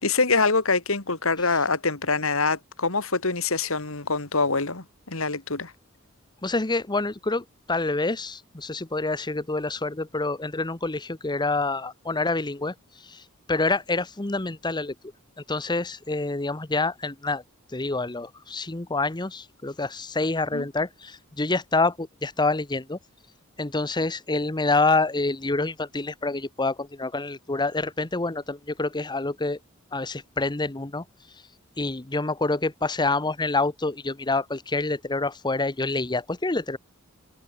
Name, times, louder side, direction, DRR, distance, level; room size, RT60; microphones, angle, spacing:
voice 1, 0.0-5.7 20.5-20.7, left 4 dB, 70° left, 2.9 m, -25 dB
voice 2, 6.4-14.9 15.5-17.4 17.7-23.0 23.6-29.6 29.9-31.0 31.8-36.8, left 3 dB, 20° left, 1.0 m, -27 dB
open air
head